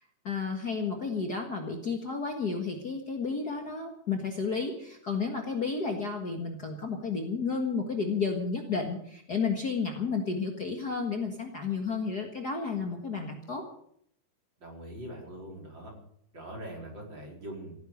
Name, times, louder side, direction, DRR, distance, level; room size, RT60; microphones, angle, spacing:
voice 1, 0.2-13.6, left 4 dB, 80° left, 3 dB, 0.8 m, -32 dB
voice 2, 14.6-15.9 16.3-17.7, right 1 dB, 25° right, 1 dB, 4.5 m, -42 dB
16.0 x 10.5 x 8.2 m, 0.68 s
omnidirectional pair, 4.7 m